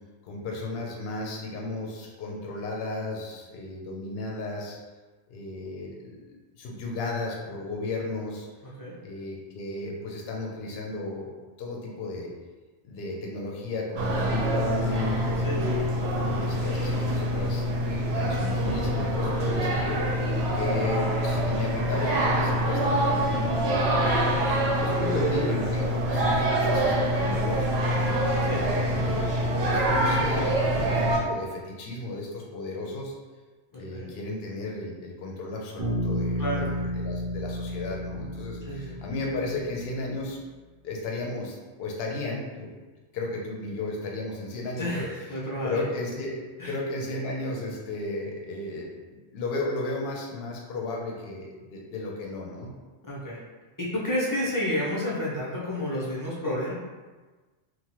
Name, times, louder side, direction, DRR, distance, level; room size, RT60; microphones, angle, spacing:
voice 1, 0.2-4.8 5.3-6.2 6.6-8.5 9.0-11.3 11.6-12.3 12.8-15.7 16.2-17.6 18.0-20.3 20.5-23.9 24.4-28.1 28.6-29.2 29.7-33.1 33.7-40.4 40.8-42.7 43.1-52.7, left 2 dB, 60° left, -2 dB, 0.8 m, -34 dB
voice 2, 8.6-8.9 15.4-15.7 16.0-16.4 28.4-28.7 33.7-34.1 36.4-36.9 38.7-39.0 44.8-45.8 46.6-46.7 53.1-53.4 53.8-56.7, left 1 dB, 30° left, -7 dB, 0.4 m, -31 dB
sound 1, 14.0-31.2, right 1 dB, 65° right, 0.8 m, -25 dB
Bass guitar, 35.8-39.8, equal, 30° right, 0.4 m, -32 dB
2.8 x 2.2 x 2.9 m, 1.3 s
omnidirectional pair, 1.3 m